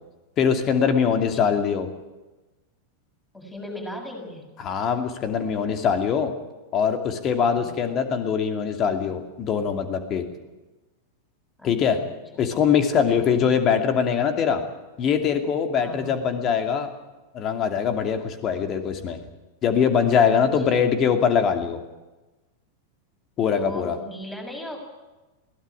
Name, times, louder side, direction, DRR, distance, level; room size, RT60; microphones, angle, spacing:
voice 1, 0.4-1.9 4.6-6.3 6.7-10.3 11.6-12.0 12.4-14.6 15.0-16.9 17.3-19.2 19.6-21.8 23.4-24.0, left 7 dB, 30° left, 6 dB, 2.6 m, -22 dB
voice 2, 3.3-4.5 7.4-7.8 11.6-12.5 13.1-13.4 15.8-16.1 20.4-20.8 23.5-24.8, left 1 dB, 5° left, 2 dB, 6.7 m, -38 dB
22.0 x 17.0 x 9.9 m, 1.1 s
figure-of-eight pair, 90°, 0 cm